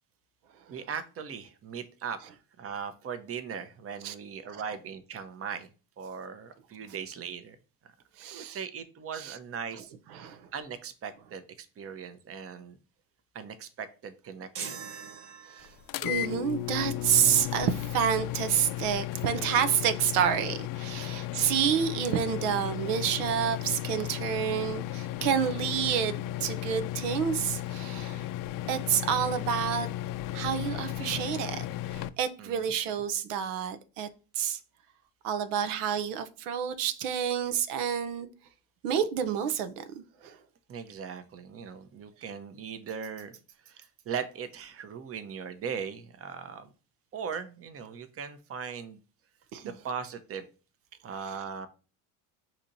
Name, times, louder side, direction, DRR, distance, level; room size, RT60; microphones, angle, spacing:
voice 1, 0.7-5.7 6.0-7.6 8.3-9.9 10.5-12.8 13.3-14.8 20.9-21.2 32.4-32.7 40.7-46.7 47.1-49.0 49.6-50.5 51.0-51.7, right 7 dB, 30° right, 0.7 m, -39 dB
voice 2, 8.2-8.6 9.2-9.4 10.1-10.5 15.6-15.7 16.0-28.3 28.7-29.9 30.3-34.1 34.4-34.6 35.2-38.3 38.8-40.4 49.5-49.7, right 8 dB, 85° right, 0.7 m, -29 dB
sound 1, 14.5-16.0, right 6 dB, 65° right, 1.1 m, -41 dB
sound 2, 15.9-32.1, left 14 dB, 50° left, 0.4 m, -35 dB
5.9 x 2.9 x 2.6 m
supercardioid pair, 80°, 44 cm